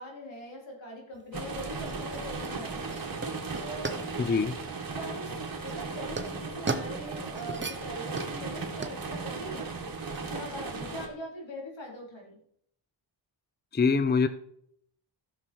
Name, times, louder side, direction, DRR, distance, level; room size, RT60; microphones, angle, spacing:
voice 1, 0.0-2.9 3.6-4.0 4.9-5.3 5.6-9.7 10.3-12.4, equal, 70° left, 0 dB, 4.0 m, -42 dB
sound 1, 1.1-10.4, right 3 dB, 25° right, 0.9 m, -39 dB
sound 2, 1.3-11.1, right 4 dB, 45° right, 2.1 m, -36 dB
voice 2, 4.2-4.6 13.7-14.3, left 5 dB, 20° left, 11 dB, 0.6 m, -24 dB
14.0 x 6.7 x 4.6 m, 0.70 s
wide cardioid pair, 100°, 46 cm